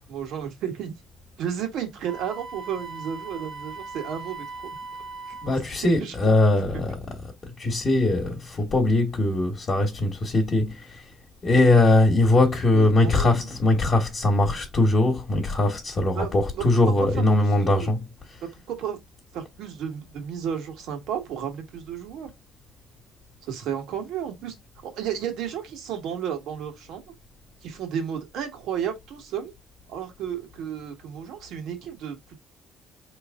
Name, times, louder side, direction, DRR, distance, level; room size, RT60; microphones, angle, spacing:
voice 1, 0.1-0.9 1.4-4.8 5.3-5.4 5.8-6.1 12.7-13.5 16.1-17.1 17.4-17.9 18.4-19.0 19.3-22.3 23.4-24.5 24.8-27.0 27.6-29.5 29.9-32.4, right 8 dB, 75° right, 1.6 m, -33 dB
Wind instrument woodwind instrument, 2.1-5.6, right 3 dB, 50° right, 1.1 m, -39 dB
voice 2, 5.4-7.0 7.6-11.0 11.4-18.0, left 2 dB, 35° left, 1.1 m, -21 dB
4.7 x 3.0 x 3.5 m
cardioid pair, 130°, 0 cm